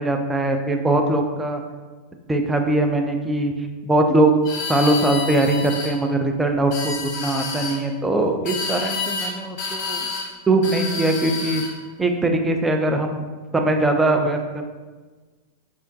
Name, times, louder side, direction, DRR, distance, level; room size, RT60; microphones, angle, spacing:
voice 1, 0.0-1.6 2.3-3.5 3.8-4.4 4.7-10.1 10.5-11.6 12.0-13.2 13.5-14.6, right 2 dB, 10° right, 4 dB, 0.3 m, -21 dB
sound 1, 4.4-5.9 6.6-7.8 8.5-9.3 9.6-10.3 10.6-11.7, left 4 dB, 45° left, 0.8 m, -29 dB
4.6 x 2.1 x 2.5 m, 1.3 s
figure-of-eight pair, 90°, 0 cm